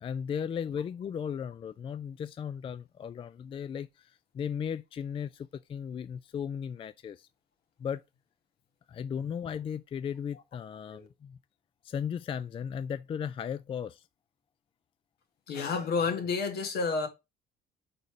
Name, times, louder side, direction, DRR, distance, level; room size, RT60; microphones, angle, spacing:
voice 1, 0.0-7.3 7.8-8.0 8.9-11.4 11.8-14.0, left 8 dB, 30° left, 0.3 m, -36 dB
voice 2, 15.5-17.1, left 4 dB, 70° left, 1.9 m, -30 dB
5.2 x 4.2 x 4.8 m
cardioid pair, 110°, 17 cm